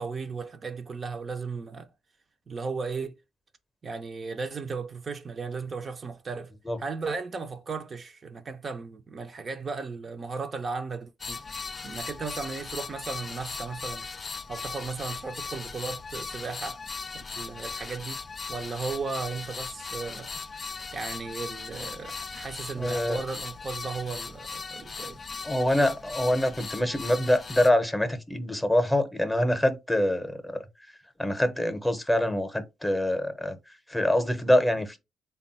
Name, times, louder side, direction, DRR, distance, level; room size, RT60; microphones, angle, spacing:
voice 1, 0.0-1.9 2.5-3.2 3.8-6.5 6.8-11.4 11.8-14.1 14.5-16.8 17.1-18.2 18.5-20.3 20.9-25.2, right 4 dB, 45° right, 0.5 m, -35 dB
sound 1, 11.2-27.7, left 4 dB, 35° left, 0.3 m, -38 dB
voice 2, 22.8-23.2 25.5-30.6 31.2-33.6 33.9-35.0, left 1 dB, 10° left, 0.8 m, -25 dB
3.5 x 2.3 x 4.1 m
supercardioid pair, 70°, 0 cm